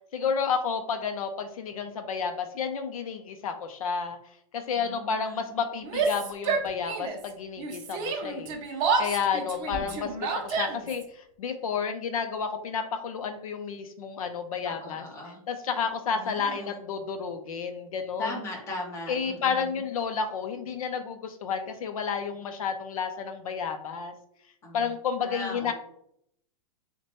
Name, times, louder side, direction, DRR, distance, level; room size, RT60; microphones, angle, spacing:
voice 1, 0.1-8.6 9.0-15.1 15.5-18.4 19.1-24.1 24.7-25.7, left 6 dB, 70° left, 7 dB, 0.6 m, -31 dB
voice 2, 4.8-5.3 9.4-10.0 14.6-15.4 16.1-16.7 18.2-19.7 24.6-24.8 25.2-25.7, left 2 dB, 15° left, -1 dB, 0.9 m, -38 dB
Yell, 5.8-7.3 7.6-11.0, right 4 dB, 20° right, 0.5 m, -29 dB
5.7 x 2.2 x 2.9 m, 0.72 s
supercardioid pair, 165°, 18 cm